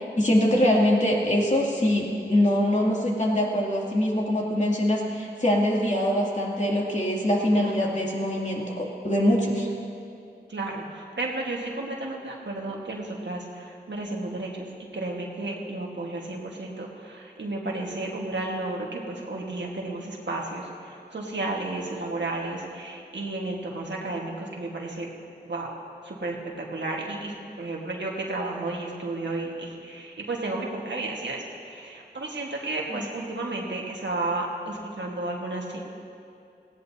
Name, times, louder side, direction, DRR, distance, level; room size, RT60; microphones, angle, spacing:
voice 1, 0.0-9.7 32.9-33.1, left 1 dB, 40° left, -3 dB, 2.5 m, -23 dB
voice 2, 7.5-7.9 10.5-14.7 14.9-25.1 25.4-25.7 26.0-35.8, right 2 dB, 85° right, -2 dB, 1.6 m, -32 dB
18.0 x 16.5 x 2.8 m, 2.5 s
wide cardioid pair, 55°, 18 cm